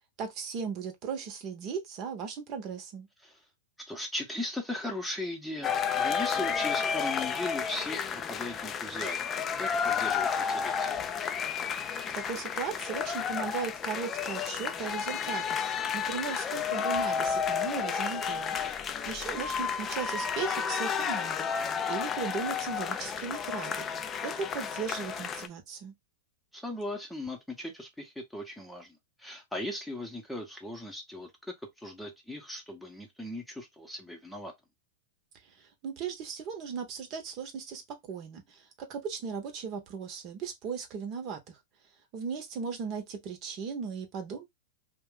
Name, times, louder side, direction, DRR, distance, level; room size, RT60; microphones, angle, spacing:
voice 1, 0.2-3.1 12.1-15.6 15.9-23.9 24.2-25.9 35.5-37.8 38.1-41.6 42.1-44.4, right 6 dB, 45° right, 0.9 m, -37 dB
voice 2, 3.9-9.3 9.6-10.9 19.3-19.4 26.5-34.5, left 1 dB, 5° left, 0.8 m, -38 dB
sound 1, 5.6-25.5, left 7 dB, 25° left, 0.4 m, -31 dB
2.4 x 2.2 x 3.7 m
hypercardioid pair, 115°, 0 cm